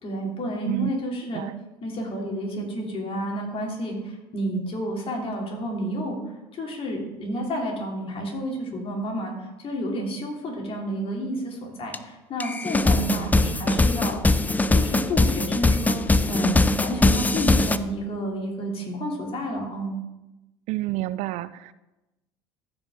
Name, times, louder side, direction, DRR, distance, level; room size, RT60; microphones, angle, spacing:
voice 1, 0.0-1.4 1.8-6.2 6.5-14.4 14.7-20.0, equal, 45° left, 0 dB, 2.7 m, -30 dB
sound 1, 11.9-12.0 12.4-17.8, left 2 dB, 10° left, 0.5 m, -21 dB
voice 2, 13.0-13.9 20.7-21.7, right 18 dB, 60° right, 15 dB, 0.4 m, -30 dB
14.0 x 5.3 x 3.6 m, 1.0 s
hypercardioid pair, 70°, 14 cm